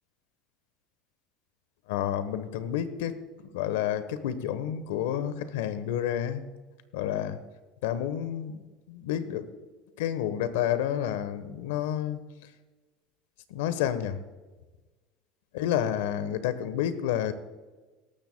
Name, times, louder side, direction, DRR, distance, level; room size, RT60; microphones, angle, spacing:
voice 1, 1.9-3.2 3.5-6.4 6.9-7.4 7.8-9.5 10.0-12.2 13.5-14.2 15.5-17.3, left 10 dB, 90° left, 13 dB, 1.1 m, -30 dB
18.0 x 13.5 x 2.2 m, 1.2 s
supercardioid pair, 115°, 0 cm